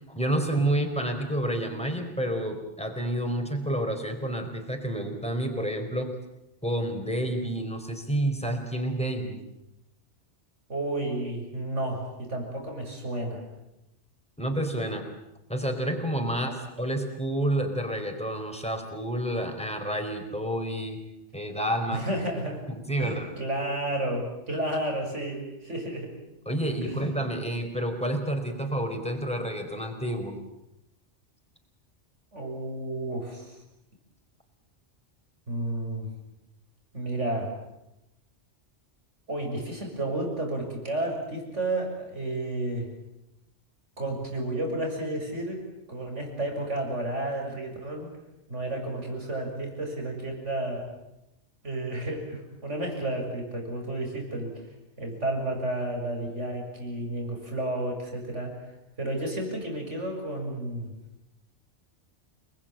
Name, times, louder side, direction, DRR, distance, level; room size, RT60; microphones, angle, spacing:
voice 1, 0.1-6.1 6.6-9.4 14.4-15.0 15.5-16.5 16.8-21.0 21.3-22.0 22.9-23.3 26.5-30.4, right 1 dB, 5° left, 4 dB, 4.4 m, -29 dB
voice 2, 10.7-13.4 16.3-16.5 21.9-22.6 23.0-26.1 26.8-27.0 32.3-33.6 35.5-36.1 36.9-37.5 39.3-42.9 44.0-45.6 45.9-48.1 48.5-50.9 51.6-54.7 55.0-58.5 59.0-60.9, right 1 dB, 85° right, 2 dB, 7.3 m, -31 dB
29.5 x 20.5 x 9.0 m, 0.89 s
omnidirectional pair, 1.2 m